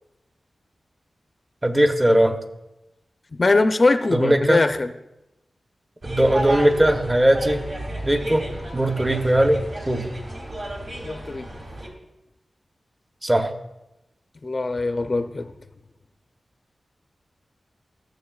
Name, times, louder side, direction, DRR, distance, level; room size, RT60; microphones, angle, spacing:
voice 1, 1.6-2.4 4.1-4.6 6.0-7.6 8.0-8.5 8.7-10.1 13.2-13.5, right 1 dB, 25° right, 6 dB, 0.9 m, -19 dB
voice 2, 3.3-4.9 11.0-11.5 14.4-15.5, left 3 dB, 45° left, 8 dB, 0.5 m, -21 dB
sound 1, 6.0-11.9, right 1 dB, 60° right, 2.2 m, -32 dB
15.0 x 7.0 x 2.3 m, 0.93 s
wide cardioid pair, 65°, 0 cm